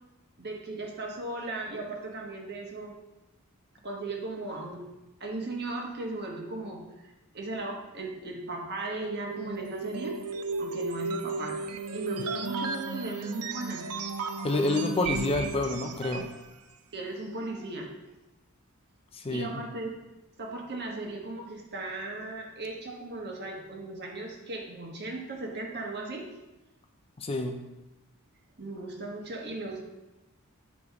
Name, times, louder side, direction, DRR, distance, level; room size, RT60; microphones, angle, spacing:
voice 1, 0.4-2.9 3.8-4.9 5.2-6.9 7.3-10.3 10.6-11.6 11.9-13.9 16.9-17.9 19.3-19.9 20.4-26.3 28.6-29.8, right 2 dB, 50° right, 0 dB, 1.2 m, -37 dB
sound 1, 9.3-16.4, right 4 dB, 80° right, 0.5 m, -34 dB
voice 2, 14.4-16.3 19.1-19.6 27.2-27.6, left 2 dB, 25° left, 5 dB, 0.5 m, -28 dB
8.3 x 5.0 x 3.5 m, 1.0 s
head